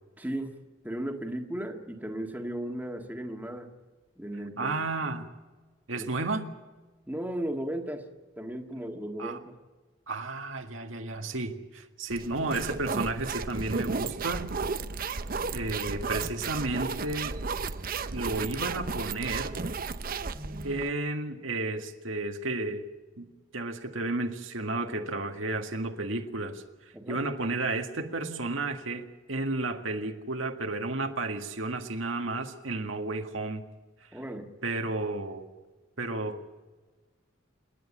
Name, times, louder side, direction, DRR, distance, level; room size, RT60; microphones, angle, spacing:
voice 1, 0.2-0.6 0.8-3.7 4.2-4.7 6.0-6.1 7.1-8.1 8.4-9.6 20.3-20.8 26.9-27.2 34.1-34.5, right 1 dB, 10° right, 1.7 m, -35 dB
voice 2, 4.6-5.3 5.9-6.5 9.2-9.4 10.1-14.6 15.5-17.4 18.1-19.6 20.6-22.9 23.2-26.6 27.1-33.6 34.6-35.5 36.0-36.4, right 2 dB, 80° right, 1.8 m, -32 dB
sound 1, 12.1-20.9, right 4 dB, 45° right, 0.7 m, -34 dB
27.0 x 10.5 x 10.0 m
head